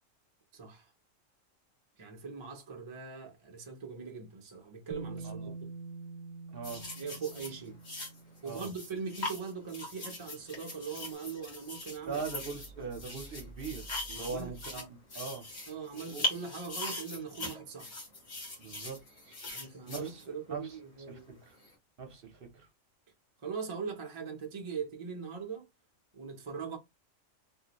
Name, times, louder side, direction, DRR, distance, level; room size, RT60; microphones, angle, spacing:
voice 1, 0.5-0.9 2.0-5.5 7.0-7.8 8.4-12.2 12.8-12.9 14.2-14.5 15.7-17.9 19.5-21.4 23.4-25.7 26.1-26.8, right 6 dB, 35° right, 0.5 m, -41 dB
Bass guitar, 4.9-11.0, right 4 dB, 85° right, 1.0 m, -47 dB
voice 2, 6.5-6.9 8.4-8.7 12.0-15.5 16.1-16.3 18.6-19.0 19.3-19.4 19.9-20.8 21.1-21.5 22.0-22.7, right 5 dB, 50° right, 0.8 m, -41 dB
sound 1, 6.6-20.7 21.5-21.7, left 2 dB, 55° left, 1.4 m, -41 dB
2.7 x 2.6 x 2.8 m
omnidirectional pair, 1.4 m